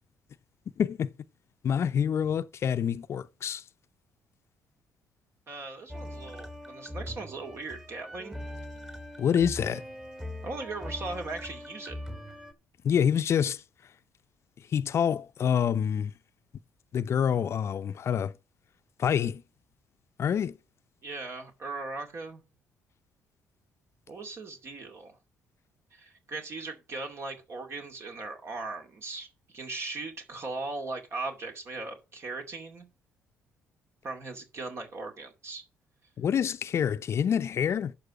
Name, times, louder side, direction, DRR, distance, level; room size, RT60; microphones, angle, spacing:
voice 1, 0.8-1.1 1.6-3.6 9.2-9.8 12.8-13.6 14.7-16.1 16.9-18.3 19.0-19.4 20.2-20.5 36.2-37.9, left 8 dB, 55° left, 0.7 m, -27 dB
voice 2, 5.5-8.4 10.4-12.0 21.0-22.4 24.1-25.2 25.9-32.9 34.0-35.6, right 3 dB, 50° right, 2.4 m, -38 dB
sound 1, 5.9-12.5, left 1 dB, 10° right, 1.6 m, -41 dB
11.5 x 4.7 x 6.1 m
supercardioid pair, 60°, 6 cm